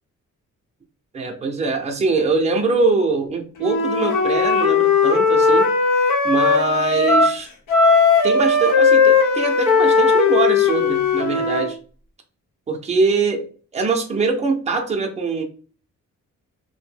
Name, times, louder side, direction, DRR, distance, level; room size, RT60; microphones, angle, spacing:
voice 1, 1.1-5.7 6.2-7.5 8.2-11.8 12.7-15.4, right 4 dB, 20° right, 3 dB, 0.5 m, -22 dB
Wind instrument woodwind instrument, 3.6-7.4 7.7-11.7, left 4 dB, 90° left, 0.9 m, -17 dB
2.6 x 2.1 x 3.2 m, 0.40 s
cardioid pair, 120°, 30 cm